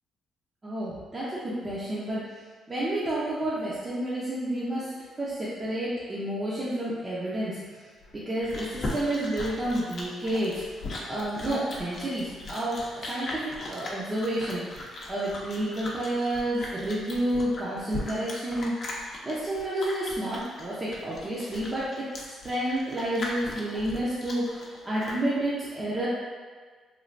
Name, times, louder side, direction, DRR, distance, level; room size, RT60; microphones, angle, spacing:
voice 1, 0.6-2.2 2.7-4.9 5.2-7.9 8.1-10.6 11.1-14.6 15.1-19.0 19.2-22.1 22.4-26.1, right 1 dB, 30° right, -9 dB, 0.6 m, -30 dB
Chewing mastication, 8.0-25.2, left 2 dB, 50° left, 0.6 m, -39 dB
3.1 x 2.4 x 2.5 m, 1.5 s
cardioid pair, 90°, 0 cm